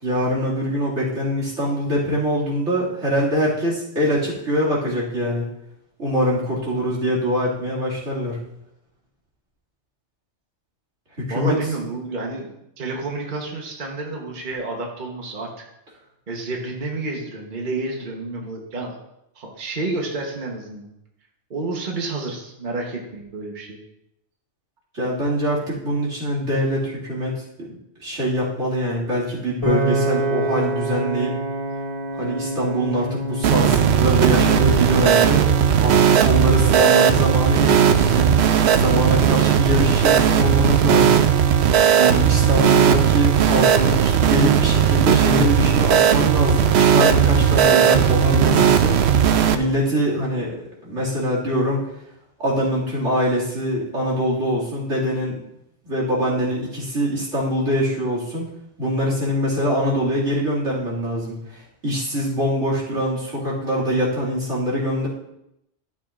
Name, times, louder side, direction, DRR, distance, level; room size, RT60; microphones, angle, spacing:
voice 1, 0.0-5.5 6.0-8.4 11.2-11.6 24.9-27.7 28.0-31.4 32.2-35.4 35.8-38.5 38.7-41.2 41.9-49.0 49.5-51.8 52.4-55.4 55.8-58.5 58.8-65.1, equal, 90° right, -5 dB, 2.8 m, -23 dB
voice 2, 11.3-12.5 12.8-15.5 16.3-18.9 19.3-20.9 21.5-23.8, right 2 dB, 45° right, 0 dB, 1.3 m, -29 dB
Piano, 29.6-41.9, right 1 dB, 25° right, 2.1 m, -29 dB
sound 1, 33.4-49.6, right 8 dB, 70° right, 0.8 m, -16 dB
12.5 x 7.1 x 2.5 m, 0.82 s
omnidirectional pair, 1.2 m